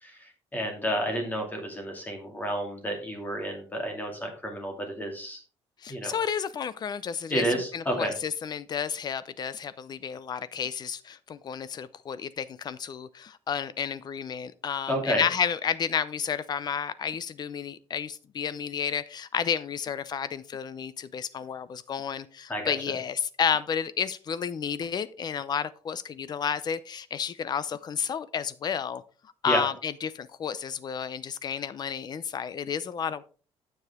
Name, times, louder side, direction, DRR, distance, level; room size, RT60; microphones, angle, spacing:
voice 1, 0.0-5.4 5.9-6.2 7.3-8.1 14.9-15.2 22.5-22.7 29.4-29.6, equal, 15° left, 2.4 m, -30 dB
voice 2, 5.8-29.0 29.4-33.2, left 7 dB, 40° left, 0.6 m, -31 dB
9.4 x 7.1 x 3.7 m
cardioid pair, 145°, 11 cm